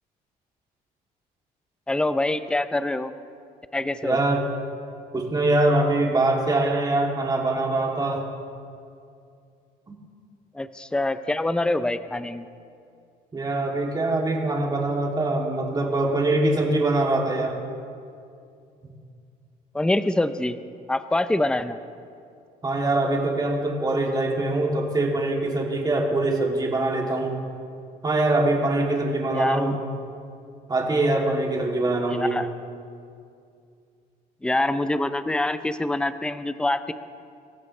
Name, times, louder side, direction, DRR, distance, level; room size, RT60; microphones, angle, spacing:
voice 1, 1.9-3.1 3.7-4.2 10.5-12.4 19.7-20.6 20.9-21.8 29.3-29.7 32.1-32.5 34.4-36.9, left 2 dB, 5° left, 11 dB, 0.6 m, -25 dB
voice 2, 4.0-4.4 5.1-8.2 13.3-17.6 22.6-27.3 28.0-29.8 30.7-32.4, right 2 dB, 25° right, -1 dB, 2.9 m, -23 dB
26.0 x 14.5 x 3.3 m, 2.4 s
cardioid pair, 110°, 17 cm